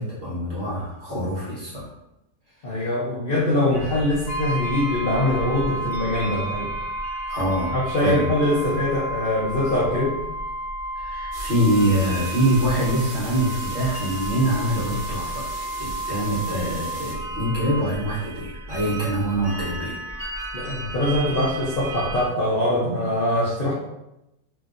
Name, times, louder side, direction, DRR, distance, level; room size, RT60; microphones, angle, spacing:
voice 1, 0.0-1.9 7.3-7.7 8.0-8.3 10.9-20.0, right 1 dB, 40° right, -8 dB, 1.1 m, -24 dB
voice 2, 2.6-6.7 7.7-10.1 20.5-23.7, left 1 dB, 70° left, -7 dB, 0.5 m, -23 dB
sound 1, 3.7-22.2, right 2 dB, 20° right, 1.3 m, -37 dB
Brass instrument, 4.3-17.9, right 1 dB, 90° left, 1.3 m, -32 dB
sound 2, 11.3-17.1, right 3 dB, 65° right, 1.0 m, -39 dB
3.0 x 2.6 x 2.4 m, 0.89 s
omnidirectional pair, 1.9 m